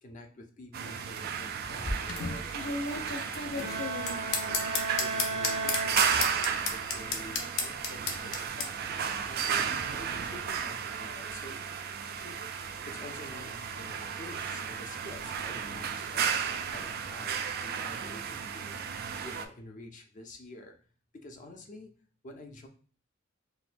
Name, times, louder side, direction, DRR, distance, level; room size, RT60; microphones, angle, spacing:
voice 1, 0.0-3.2 3.6-4.7 5.0-8.7 9.3-11.6 12.1-12.3 12.9-16.3 16.7-18.7 19.2-20.7 21.2-21.9 22.2-22.7, left 1 dB, 40° left, 4 dB, 0.5 m, -48 dB
sound 1, 0.7-19.5, right 7 dB, 50° right, 0.3 m, -34 dB
sound 2, 1.6-8.7, left 4 dB, 90° left, 0.6 m, -33 dB
Bowed string instrument, 3.6-6.7, right 3 dB, 85° right, 1.2 m, -35 dB
4.1 x 2.2 x 2.5 m, 0.40 s
head